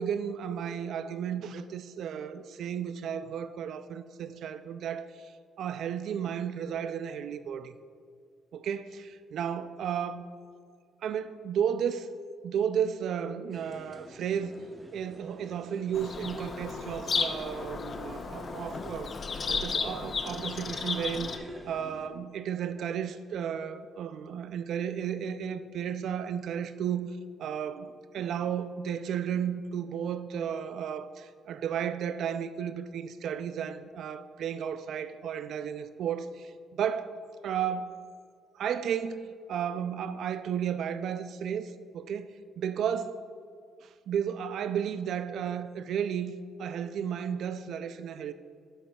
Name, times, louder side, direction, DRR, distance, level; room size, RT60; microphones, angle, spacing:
voice 1, 0.0-5.3 5.6-7.8 8.5-10.2 11.0-12.1 12.4-14.6 14.9-19.1 19.5-21.3 21.7-27.1 27.4-37.2 37.4-38.0 38.5-42.3 42.6-43.2 43.8-46.3 46.6-48.3, right 8 dB, 70° right, 0.4 m, -33 dB
sound 1, 13.5-22.1, right 1 dB, 25° right, 0.9 m, -50 dB
Bird vocalization bird call bird song, 15.9-21.4, left 5 dB, 45° left, 0.5 m, -34 dB
9.9 x 7.6 x 2.3 m
cardioid pair, 90°, 0 cm